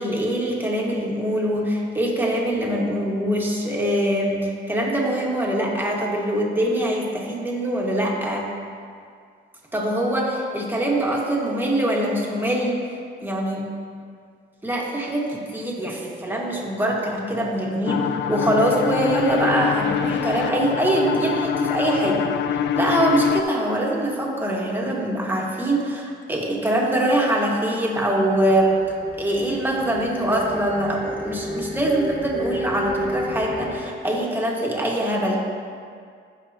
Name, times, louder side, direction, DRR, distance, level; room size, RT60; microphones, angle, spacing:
voice 1, 0.0-8.5 9.7-12.8 13.2-13.6 14.6-22.2 22.5-28.7 29.2-35.4, right 1 dB, 10° right, -3 dB, 1.9 m, -23 dB
sound 1, 17.8-23.4, left 8 dB, 65° left, 0.4 m, -25 dB
sound 2, 28.2-33.7, equal, 85° left, 2.3 m, -32 dB
15.5 x 5.5 x 3.0 m, 2.2 s
cardioid pair, 90°, 20 cm